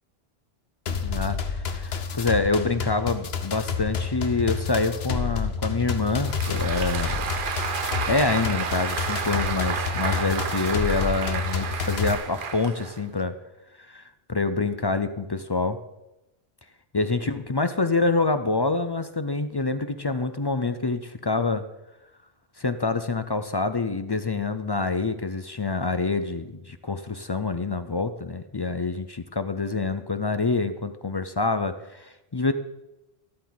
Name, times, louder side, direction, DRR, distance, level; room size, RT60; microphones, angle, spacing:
sound 1, 0.9-12.1, left 6 dB, 65° left, 1.1 m, -29 dB
voice 1, 1.0-1.4 1.7-7.2 8.1-13.3 13.9-14.0 14.3-15.8 16.9-21.6 22.6-32.5, left 3 dB, 35° left, 10 dB, 0.4 m, -26 dB
Applause, 6.1-13.2, right 6 dB, 55° right, 0.9 m, -31 dB
13.0 x 12.5 x 4.0 m, 0.96 s
omnidirectional pair, 1.1 m